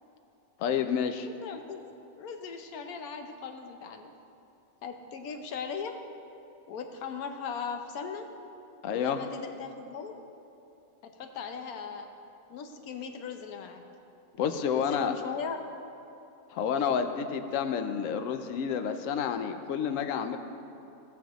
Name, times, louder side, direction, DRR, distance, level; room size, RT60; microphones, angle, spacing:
voice 1, 0.6-1.3 8.8-9.2 14.4-15.1 16.5-20.4, left 7 dB, 70° left, 8 dB, 1.0 m, -29 dB
voice 2, 1.3-1.8 2.2-4.1 4.8-6.0 6.7-8.3 8.9-10.1 11.0-12.1 12.5-13.8 14.7-15.6 16.7-16.9, left 6 dB, 90° left, 5 dB, 1.2 m, -38 dB
16.5 x 7.0 x 3.0 m, 2.8 s
omnidirectional pair, 1.5 m